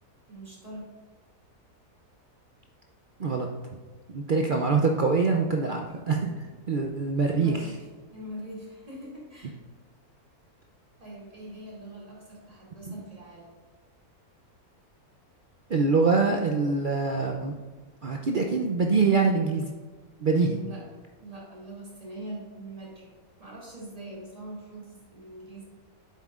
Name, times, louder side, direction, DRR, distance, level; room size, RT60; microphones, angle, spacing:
voice 1, 0.3-0.9 7.3-7.7 8.1-9.6 11.0-13.6 20.4-20.9 21.2-25.6, right 1 dB, 25° right, -5 dB, 2.5 m, -42 dB
voice 2, 4.1-7.7 12.9-13.0 15.7-17.6 18.0-19.7 20.2-20.6, right 4 dB, 75° right, 1 dB, 0.4 m, -24 dB
9.7 x 7.8 x 2.4 m, 1.3 s
omnidirectional pair, 1.6 m